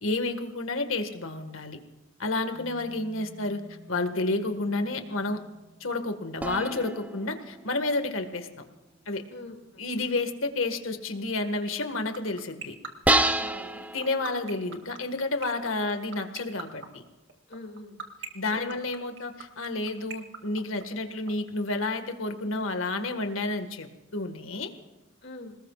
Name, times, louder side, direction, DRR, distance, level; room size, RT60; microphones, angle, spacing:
voice 1, 0.0-1.8 2.2-3.6 3.9-5.4 5.8-8.5 9.1-9.2 9.8-12.8 13.9-17.0 18.3-24.7, left 2 dB, 85° left, 7 dB, 1.8 m, -30 dB
sound 1, 2.5-12.0, right 2 dB, 25° right, 3.0 m, -55 dB
sound 2, 6.4-8.5 13.0-14.9, right 2 dB, 5° right, 0.6 m, -29 dB
voice 2, 9.3-9.8 13.4-13.8 17.5-17.9 18.5-18.8 25.2-25.5, left 2 dB, 60° left, 2 dB, 2.6 m, -43 dB
sound 3, 11.7-21.3, right 6 dB, 60° right, 2.0 m, -38 dB
28.0 x 19.5 x 2.5 m, 1.1 s
head